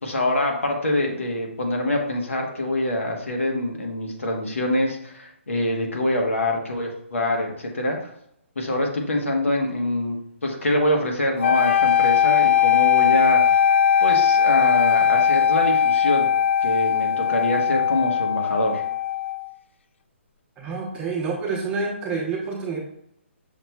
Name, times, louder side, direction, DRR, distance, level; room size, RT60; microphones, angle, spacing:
voice 1, 0.0-8.0 8.6-13.4 14.0-16.3 16.6-18.8, left 1 dB, 90° left, 1 dB, 1.1 m, -25 dB
sound 1, 11.4-19.5, left 8 dB, 65° left, 0.4 m, -19 dB
voice 2, 20.6-22.8, right 4 dB, 15° right, -2 dB, 0.8 m, -28 dB
6.4 x 2.9 x 2.2 m, 0.74 s
hypercardioid pair, 150°, 7 cm